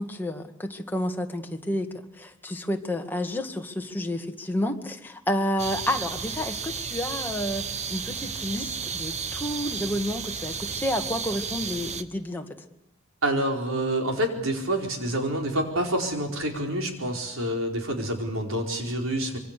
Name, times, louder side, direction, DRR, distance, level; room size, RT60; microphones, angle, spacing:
voice 1, 0.0-12.5, left 1 dB, 10° left, 3 dB, 2.0 m, -30 dB
sound 1, 5.6-12.0, right 6 dB, 35° right, 1.0 m, -33 dB
voice 2, 13.2-19.4, right 1 dB, 75° right, 3 dB, 4.6 m, -27 dB
26.5 x 23.5 x 6.8 m, 0.93 s
head